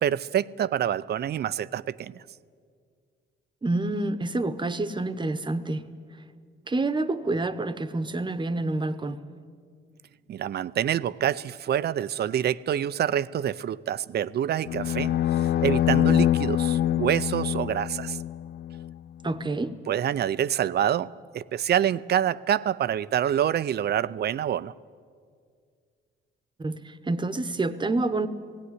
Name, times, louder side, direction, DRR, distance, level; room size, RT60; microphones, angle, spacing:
voice 1, 0.0-2.2 10.3-15.1 15.6-18.2 19.9-24.7, right 10 dB, 55° right, 0.5 m, -26 dB
voice 2, 3.6-5.9 6.7-9.2 19.2-19.7 26.6-28.3, right 2 dB, 25° right, 1.0 m, -28 dB
sound 1, 14.7-18.9, left 11 dB, 55° left, 0.4 m, -25 dB
17.0 x 17.0 x 9.8 m
cardioid pair, 90°, 20 cm